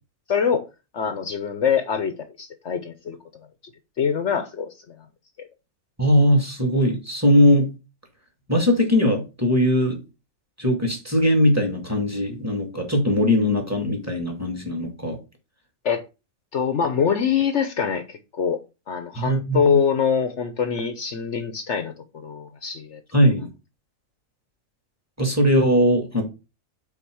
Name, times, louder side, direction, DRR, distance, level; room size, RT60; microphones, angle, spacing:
voice 1, 0.3-0.6 0.9-3.2 4.0-5.0 5.4-5.5 15.8-16.0 16.5-18.6 18.9-23.0, left 7 dB, 60° left, 1.1 m, -24 dB
voice 2, 6.0-7.7 8.5-10.0 10.6-15.2 19.2-19.8 23.1-23.5 25.2-26.2, equal, 10° right, 2.1 m, -20 dB
5.7 x 4.5 x 6.3 m
omnidirectional pair, 1.4 m